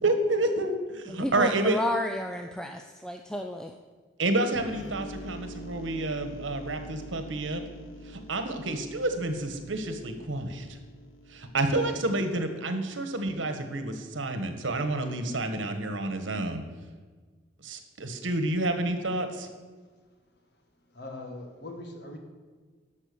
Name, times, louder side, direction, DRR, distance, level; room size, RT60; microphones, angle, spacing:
voice 1, 0.0-1.8 4.2-7.6 8.1-10.7 11.3-16.6 17.6-19.5, right 2 dB, 85° right, 7 dB, 1.3 m, -29 dB
voice 2, 1.1-3.8, left 1 dB, 5° left, 5 dB, 0.4 m, -32 dB
sound 1, 4.5-12.1, equal, 90° left, 1.1 m, -45 dB
voice 3, 20.9-22.2, left 2 dB, 60° left, 4 dB, 1.7 m, -41 dB
12.5 x 5.8 x 6.9 m, 1.4 s
head